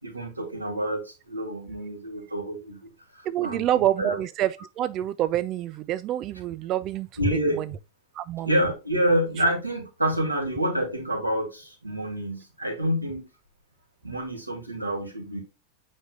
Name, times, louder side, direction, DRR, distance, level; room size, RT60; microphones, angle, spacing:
voice 1, 0.0-4.2 7.2-7.6 8.4-13.3 14.0-15.4, equal, 85° right, 3.1 m, -28 dB
voice 2, 3.3-7.6 8.2-8.5, right 12 dB, 35° right, 0.3 m, -27 dB
9.2 x 5.3 x 2.4 m
figure-of-eight pair, 90°, 0 cm